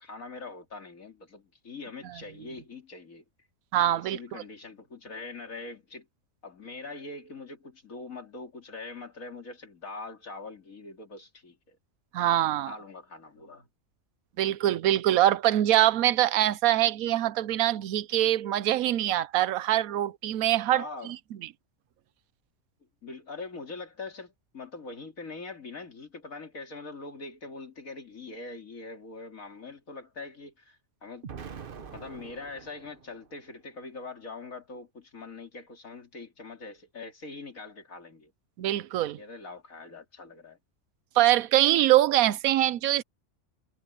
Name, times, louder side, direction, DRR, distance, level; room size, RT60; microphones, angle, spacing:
voice 1, 0.0-3.2 4.0-6.1 6.4-11.8 12.6-13.7 20.7-21.1 23.0-31.3 31.9-38.3 39.2-40.6, left 3 dB, 75° left, 3.3 m, -43 dB
voice 2, 3.7-4.4 12.1-12.7 14.4-21.1 38.6-39.2 41.2-43.0, right 13 dB, 85° right, 1.1 m, -24 dB
Explosion, 31.2-33.4, right 6 dB, 45° right, 1.0 m, -44 dB
omnidirectional pair, 1.4 m